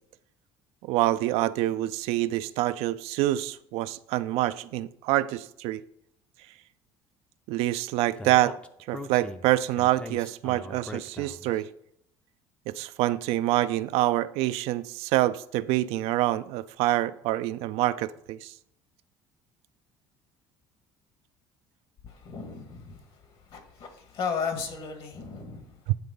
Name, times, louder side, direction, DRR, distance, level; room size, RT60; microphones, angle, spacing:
voice 1, 0.8-5.8 7.5-8.6 8.9-11.7 12.7-18.5 25.9-26.0, right 15 dB, 80° right, 14 dB, 0.4 m, -26 dB
Speech, 8.2-11.6, left 1 dB, 10° left, 0.5 m, -41 dB
voice 2, 22.0-25.9, left 5 dB, 60° left, 5 dB, 1.8 m, -35 dB
9.4 x 3.7 x 5.3 m, 0.73 s
cardioid pair, 110°, 10 cm